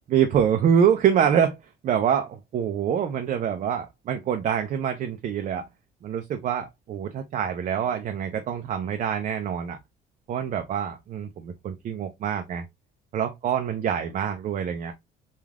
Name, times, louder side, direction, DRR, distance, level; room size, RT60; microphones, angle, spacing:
voice 1, 0.1-1.6 1.8-5.7 6.0-9.8 10.3-12.6 13.1-14.9, right 8 dB, 50° right, 0.4 m, -25 dB
3.2 x 2.4 x 2.3 m
cardioid pair, 110°, 17 cm